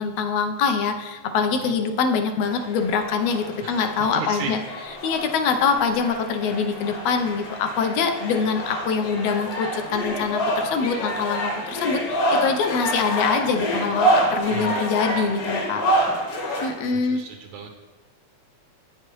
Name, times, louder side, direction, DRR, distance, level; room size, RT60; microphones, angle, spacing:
voice 1, 0.0-4.6 5.0-15.8 16.6-17.2, left 5 dB, 75° left, 6 dB, 1.6 m, -24 dB
sound 1, 2.4-16.7, right 1 dB, 60° left, 1.9 m, -27 dB
voice 2, 4.1-4.5 14.5-14.9 15.9-16.0 16.5-17.7, right 7 dB, 85° right, 3 dB, 2.0 m, -36 dB
9.2 x 7.8 x 3.0 m, 1.2 s
omnidirectional pair, 3.4 m